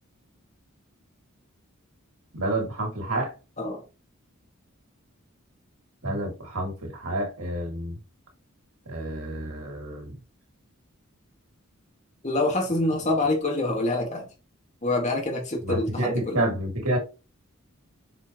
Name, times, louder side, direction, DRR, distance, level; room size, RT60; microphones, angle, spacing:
voice 1, 2.3-3.3 6.0-8.0 8.9-10.1 15.6-17.0, right 1 dB, 90° right, 2.6 m, -29 dB
voice 2, 12.2-14.3 14.8-16.4, left 2 dB, 35° left, 2.0 m, -26 dB
7.1 x 4.6 x 3.0 m
head